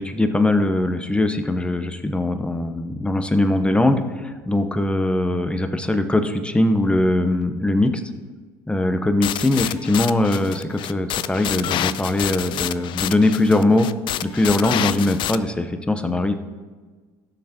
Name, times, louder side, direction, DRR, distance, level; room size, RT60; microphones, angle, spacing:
voice 1, 0.0-8.0 8.7-13.9 14.2-16.3, left 2 dB, 10° left, 8 dB, 0.9 m, -21 dB
sound 1, 9.2-15.4, left 12 dB, 50° left, 0.4 m, -28 dB
16.0 x 6.6 x 2.9 m, 1.4 s
hypercardioid pair, 70°, 11 cm